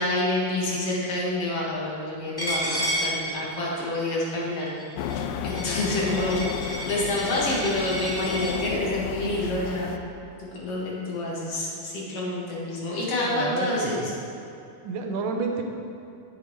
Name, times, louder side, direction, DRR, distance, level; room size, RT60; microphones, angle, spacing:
voice 1, 0.0-10.0 10.5-14.0, left 1 dB, 50° left, -5 dB, 2.6 m, -28 dB
Coin (dropping), 2.4-8.5, equal, 10° left, 2.0 m, -32 dB
sound 1, 5.0-10.0, left 8 dB, 85° left, 2.2 m, -32 dB
voice 2, 13.2-14.1 14.8-15.6, right 4 dB, 75° right, 3 dB, 2.4 m, -30 dB
14.0 x 8.9 x 3.2 m, 2.7 s
omnidirectional pair, 4.0 m